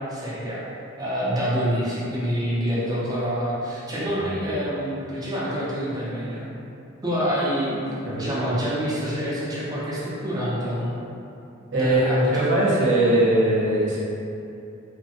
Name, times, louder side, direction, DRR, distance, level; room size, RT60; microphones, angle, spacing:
voice 1, 0.1-0.6 1.0-6.5 7.0-11.0 11.7-12.3, equal, 20° right, -8 dB, 0.5 m, -27 dB
voice 2, 4.1-4.5 8.1-8.3 11.7-12.0 12.3-14.0, right 1 dB, 60° right, -6 dB, 0.6 m, -21 dB
3.1 x 2.1 x 2.7 m, 2.7 s
head